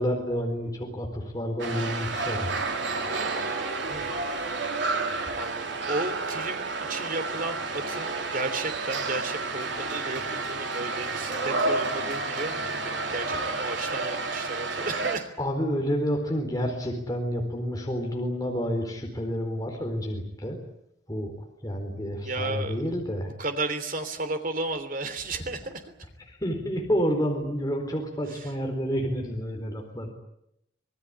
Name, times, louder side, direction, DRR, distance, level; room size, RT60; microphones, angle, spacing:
voice 1, 0.0-2.8 15.4-20.6 21.1-21.3 21.6-23.3 26.3-30.1, equal, 20° left, 2 dB, 4.2 m, -29 dB
sound 1, 1.6-15.2, right 3 dB, 75° right, 3.5 m, -30 dB
voice 2, 3.9-4.2 4.7-4.9 5.3-15.3 22.2-22.8 23.2-25.8 28.3-28.5, right 2 dB, 50° right, 9 dB, 3.2 m, -34 dB
26.0 x 19.0 x 10.0 m, 0.82 s
head